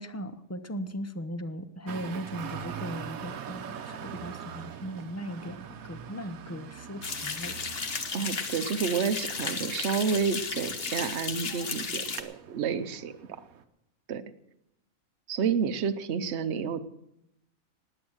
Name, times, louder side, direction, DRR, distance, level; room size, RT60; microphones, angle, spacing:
voice 1, 0.0-7.6, equal, 15° left, 10 dB, 0.6 m, -38 dB
Traffic noise roadway noise, 1.9-13.6, right 8 dB, 80° right, 1.3 m, -43 dB
sound 1, 7.0-12.2, left 5 dB, 45° left, 1.3 m, -34 dB
voice 2, 8.1-13.1 14.1-14.2 15.3-16.8, right 6 dB, 55° right, 11 dB, 1.0 m, -30 dB
19.5 x 8.8 x 6.3 m, 0.84 s
omnidirectional pair, 1.5 m